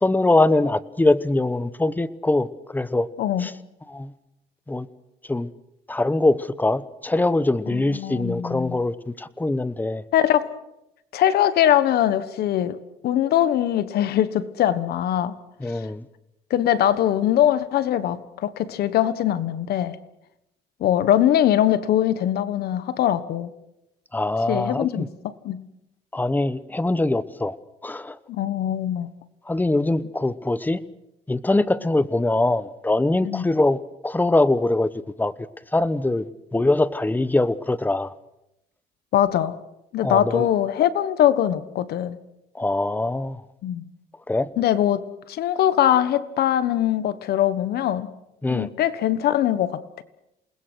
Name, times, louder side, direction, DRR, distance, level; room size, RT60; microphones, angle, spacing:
voice 1, 0.0-3.1 3.4-3.5 3.9-4.1 4.7-4.9 5.3-5.5 5.9-10.0 15.6-16.0 24.1-25.1 26.1-27.6 27.8-28.2 29.5-30.8 31.3-34.9 35.2-35.3 35.7-36.2 36.5-38.1 40.0-40.5 42.5-43.4 44.3-44.5 48.4-48.7, left 2 dB, 10° left, 16 dB, 1.0 m, -22 dB
voice 2, 3.2-3.5 7.7-8.8 10.1-10.5 11.1-12.8 13.0-15.3 16.5-20.0 20.8-23.5 24.5-25.6 28.3-29.1 33.2-33.5 39.1-39.6 39.9-42.2 43.6-43.9 44.6-48.1 48.5-50.0, left 11 dB, 70° left, 14 dB, 1.4 m, -22 dB
28.5 x 20.5 x 6.4 m, 0.87 s
cardioid pair, 110°, 17 cm